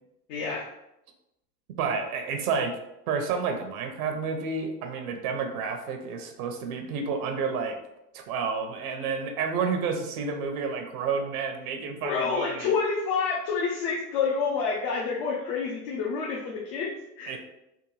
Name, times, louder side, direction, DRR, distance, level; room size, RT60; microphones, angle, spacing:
voice 1, 0.3-0.7 12.0-17.4, left 5 dB, 55° left, -2 dB, 0.8 m, -28 dB
voice 2, 1.8-2.7 3.1-7.8 8.1-12.7 17.3-17.4, right 5 dB, 70° right, 5 dB, 0.7 m, -30 dB
3.6 x 2.3 x 3.1 m, 0.86 s
hypercardioid pair, 95°, 46 cm